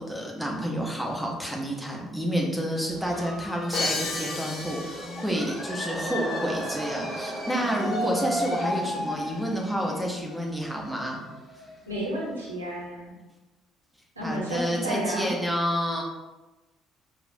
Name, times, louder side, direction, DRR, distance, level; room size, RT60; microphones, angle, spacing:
voice 1, 0.0-11.2 14.2-16.0, equal, 5° right, -1 dB, 0.9 m, -29 dB
sound 1, 2.9-12.4, left 1 dB, 30° left, 1.0 m, -35 dB
Crash cymbal, 3.7-5.6, left 2 dB, 45° left, 0.5 m, -32 dB
sound 2, 4.9-9.7, right 2 dB, 30° right, 0.5 m, -38 dB
voice 2, 11.9-13.1 14.2-15.3, right 1 dB, 85° right, -5 dB, 0.8 m, -31 dB
4.9 x 2.0 x 2.6 m, 1.1 s
figure-of-eight pair, 50°, 0 cm